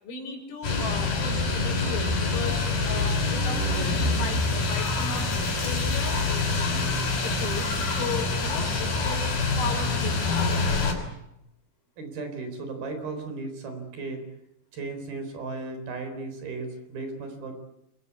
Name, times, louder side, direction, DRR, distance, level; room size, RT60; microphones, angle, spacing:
voice 1, 0.0-9.3 9.6-10.9, left 5 dB, 85° left, 3 dB, 8.2 m, -36 dB
sound 1, 0.6-10.9, left 3 dB, 45° left, 6.9 m, -26 dB
voice 2, 12.0-14.2 14.7-17.5, right 3 dB, 50° right, 7 dB, 5.7 m, -35 dB
28.5 x 23.0 x 8.4 m, 0.85 s
omnidirectional pair, 5.9 m